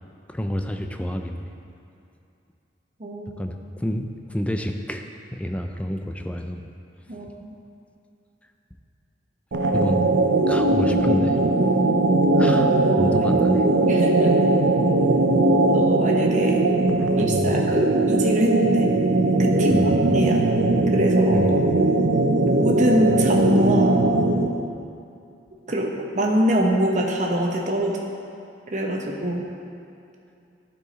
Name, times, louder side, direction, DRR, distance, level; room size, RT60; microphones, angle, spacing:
voice 1, 0.3-1.5 3.4-5.0 5.3-6.7 7.1-7.2 9.7-10.0 10.5-11.4 12.3-12.7 13.0-13.6 17.2-17.6 19.7-20.0 21.3-21.6, equal, 5° left, 5 dB, 0.4 m, -29 dB
voice 2, 3.0-3.4 7.1-7.5 12.4-12.6 12.9-13.3 13.9-14.3 15.7-16.7 17.2-18.9 19.4-20.5 20.9-21.5 22.4-24.0 25.7-28.0 28.7-29.4, equal, 40° right, 0 dB, 0.9 m, -24 dB
sound 1, 9.5-24.6, right 2 dB, 80° right, 0.5 m, -19 dB
12.0 x 4.8 x 4.0 m, 2.6 s
head